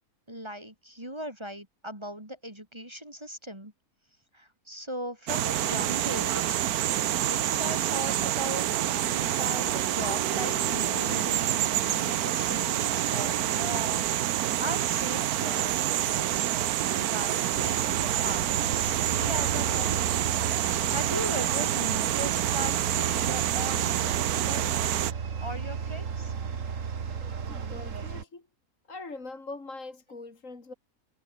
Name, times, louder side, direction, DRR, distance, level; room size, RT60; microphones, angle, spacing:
voice 1, 0.3-3.7 4.3-6.8 7.2-8.7 9.1-16.5 17.0-20.2 20.9-25.0 25.4-26.3, equal, 15° right, 4.5 m, -38 dB
sound 1, 5.3-25.1, right 12 dB, 80° right, 1.3 m, -27 dB
sound 2, 8.7-12.5, left 1 dB, 30° left, 4.5 m, -45 dB
sound 3, 17.5-28.2, right 6 dB, 60° right, 1.9 m, -34 dB
voice 2, 27.5-28.5 28.9-30.7, left 3 dB, 55° left, 3.6 m, -42 dB
omnidirectional pair, 1.6 m